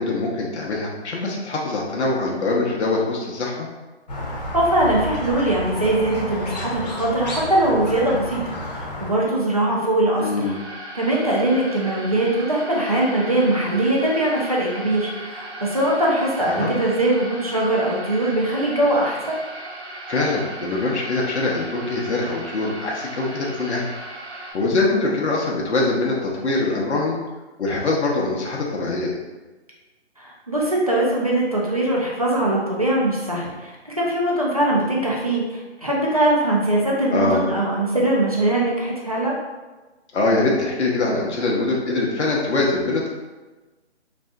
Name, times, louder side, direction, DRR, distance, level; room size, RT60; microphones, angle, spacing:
voice 1, 0.0-3.7 10.2-10.6 16.5-16.7 20.1-23.8 24.5-27.2 27.6-29.1 37.1-37.4 40.1-43.1, left 2 dB, 80° left, -2 dB, 0.6 m, -23 dB
Squeak, 4.1-9.1, left 1 dB, 40° left, 0.6 m, -31 dB
voice 2, 4.5-10.6 10.9-19.4 30.2-39.4, right 1 dB, 35° right, -4 dB, 0.4 m, -21 dB
sound 1, 10.4-24.5, right 1 dB, 80° right, 0.8 m, -37 dB
2.6 x 2.4 x 2.2 m, 1.2 s
hypercardioid pair, 165°, 34 cm